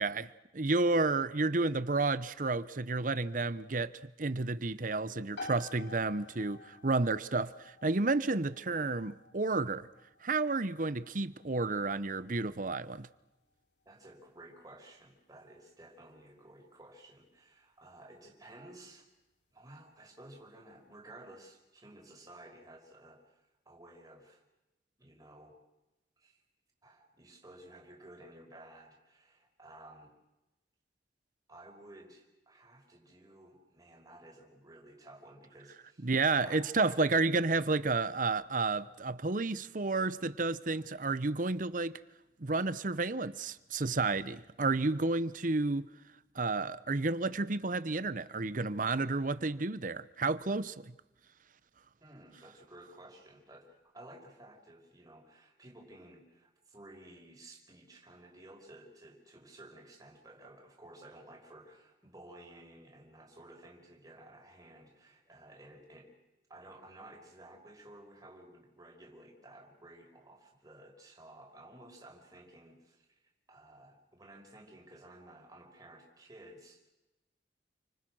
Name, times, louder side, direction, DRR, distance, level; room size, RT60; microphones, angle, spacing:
voice 1, 0.0-9.9 10.2-13.1 36.0-42.0 42.4-45.9 46.3-50.9, right 3 dB, 50° right, 0.9 m, -31 dB
sound 1, 5.3-19.8, left 3 dB, 75° left, 3.4 m, -54 dB
voice 2, 13.9-19.1 19.5-24.4 25.0-25.6 26.2-26.4 26.8-30.1 31.5-37.0 52.0-66.1 66.5-76.9, right 1 dB, 20° right, 5.5 m, -54 dB
29.5 x 25.0 x 6.3 m
head